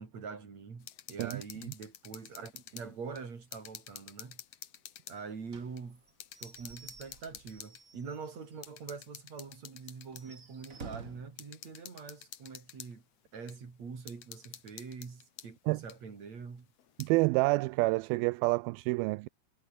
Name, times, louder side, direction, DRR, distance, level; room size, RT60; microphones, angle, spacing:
voice 1, 0.0-4.4 5.1-6.0 6.4-13.0 13.3-16.7, right 5 dB, 45° right, 5.4 m, -44 dB
sound 1, 0.8-2.9 3.2-5.2 5.8-5.9 6.2-7.8 8.6-10.3 10.6-10.7 11.4-12.9 13.5-13.6 14.1-15.5 15.9-16.0 16.8-17.1, left 10 dB, 55° left, 2.0 m, -49 dB
voice 2, 1.2-1.7 15.7-15.8 17.0-19.3, right 24 dB, 85° right, 2.4 m, -28 dB
Slam / Squeak / Wood, 5.5-8.7 9.0-9.1 9.4-9.5 10.0-11.4, right 4 dB, 25° right, 2.2 m, -51 dB
omnidirectional pair, 4.3 m